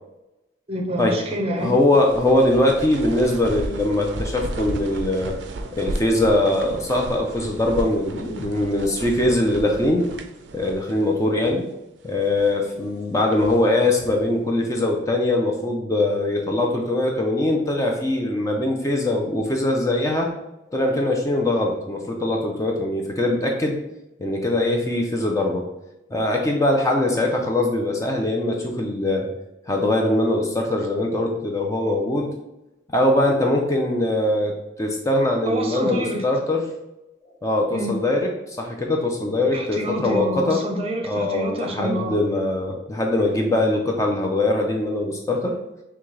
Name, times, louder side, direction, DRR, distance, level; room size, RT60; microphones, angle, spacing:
voice 1, 0.7-1.7 35.5-36.2 37.7-37.9 39.5-42.2, right 1 dB, 35° right, 3 dB, 0.6 m, -27 dB
voice 2, 1.5-5.3 5.7-10.1 10.5-11.7 12.0-20.3 20.7-23.8 24.2-25.7 26.1-29.3 29.7-32.3 32.9-36.6 37.4-40.6 41.1-45.6, left 1 dB, 15° left, 1 dB, 0.5 m, -22 dB
sound 1, 1.6-11.2 11.4-11.5 12.1-12.6 13.2-14.3, right 2 dB, 85° right, 0.4 m, -34 dB
6.0 x 2.3 x 3.2 m, 0.92 s
head